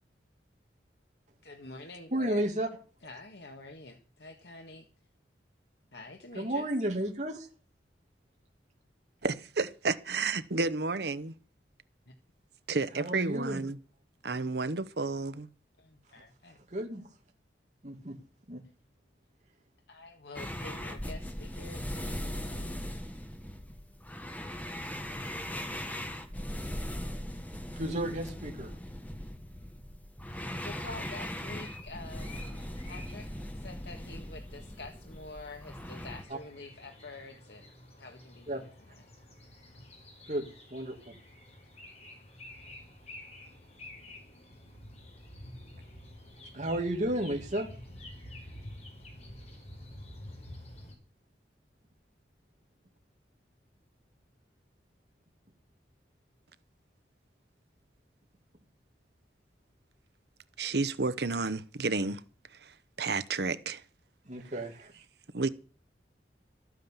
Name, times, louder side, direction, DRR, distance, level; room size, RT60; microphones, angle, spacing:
voice 1, 1.4-2.4 3.0-4.9 5.9-6.6 12.1-12.2 15.8-16.6 19.9-22.8 30.6-39.0 39.7-39.9, left 2 dB, 65° left, 1.7 m, -47 dB
voice 2, 2.1-2.7 6.3-7.5 13.0-13.6 16.7-17.0 17.8-18.2 18.5-18.6 27.7-28.7 38.5-38.6 40.3-41.1 46.5-47.7 64.3-64.9, right 1 dB, 40° right, 2.4 m, -32 dB
voice 3, 9.2-11.3 12.7-13.8 14.2-15.5 60.6-62.2 62.6-62.7 63.0-63.8 65.3-65.5, right 3 dB, 60° right, 0.9 m, -31 dB
sound 1, 20.3-36.2, equal, 10° left, 1.5 m, -39 dB
sound 2, 31.0-51.0, left 1 dB, 35° left, 5.3 m, -50 dB
13.5 x 9.4 x 7.1 m
head